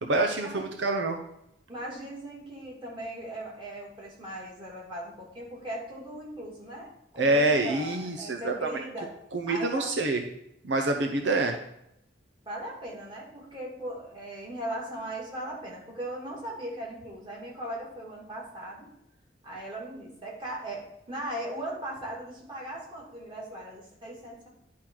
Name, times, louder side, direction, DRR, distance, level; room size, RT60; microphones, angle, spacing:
voice 1, 0.0-1.2 7.2-10.2 10.6-11.6, right 2 dB, 80° right, 4 dB, 0.7 m, -27 dB
voice 2, 1.7-9.1 9.5-9.9 12.5-18.9 19.4-24.5, right 1 dB, 30° right, -4 dB, 2.3 m, -38 dB
10.5 x 3.8 x 4.6 m, 0.79 s
head